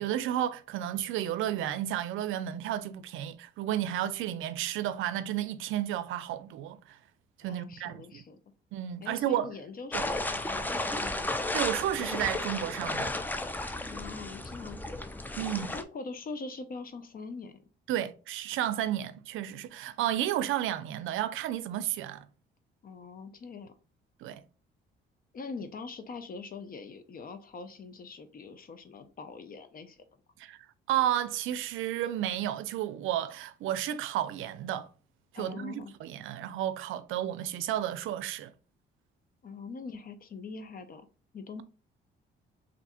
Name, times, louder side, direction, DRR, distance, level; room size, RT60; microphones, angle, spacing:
voice 1, 0.0-7.0 7.4-8.2 8.7-9.5 9.9-10.0 11.5-13.1 15.4-15.7 17.9-22.3 24.2-24.4 30.4-30.6 30.9-34.9 35.3-38.5, right 12 dB, 85° right, 0.5 m, -32 dB
voice 2, 7.5-8.4 9.0-11.4 13.8-14.8 15.7-17.6 22.8-23.7 25.3-30.0 35.3-35.9 39.4-41.1 41.3-41.6, left 4 dB, 45° left, 0.7 m, -43 dB
sound 1, 9.9-15.8, left 2 dB, 10° left, 0.4 m, -33 dB
3.4 x 2.6 x 4.2 m
cardioid pair, 90°, 20 cm